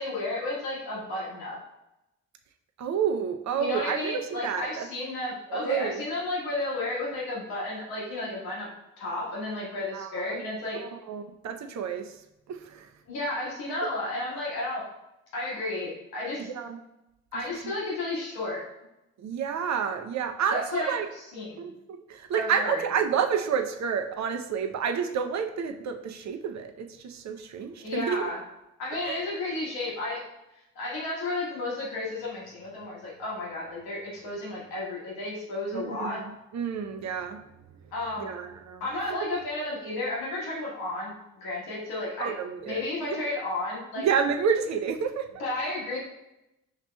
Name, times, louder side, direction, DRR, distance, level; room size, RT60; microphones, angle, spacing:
voice 1, 0.0-1.6 3.6-8.7 9.0-10.8 13.1-14.9 15.3-16.5 17.3-18.6 20.5-21.7 22.3-22.8 27.8-28.4 28.8-30.2 30.7-36.2 37.9-38.3 38.8-42.3 42.6-44.1 45.4-46.0, left 2 dB, 85° left, -5 dB, 1.3 m, -32 dB
voice 2, 2.8-4.9 5.5-6.0 9.9-10.4 10.7-12.1 12.5-12.8 16.5-16.8 17.6-17.7 19.2-21.1 21.6-28.3 29.1-29.2 35.7-36.2 36.5-37.4 38.2-38.8 39.1-39.2 42.2-43.2 44.0-45.3, right 7 dB, 50° right, 6 dB, 0.6 m, -29 dB
5.7 x 3.0 x 2.2 m, 0.91 s
hypercardioid pair, 45°, 36 cm